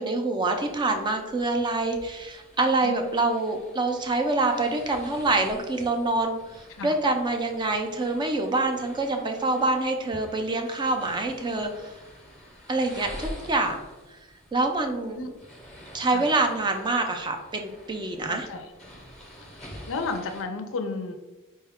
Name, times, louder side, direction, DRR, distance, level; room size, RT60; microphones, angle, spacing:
voice 1, 0.0-11.9 12.7-13.8 14.5-15.2 15.9-18.5, right 2 dB, 20° right, 4 dB, 0.4 m, -26 dB
sound 1, 0.5-20.4, equal, 5° left, 0.7 m, -47 dB
voice 2, 18.3-18.7 19.6-21.2, left 3 dB, 60° left, 7 dB, 0.4 m, -33 dB
4.4 x 2.2 x 3.4 m, 1.1 s
head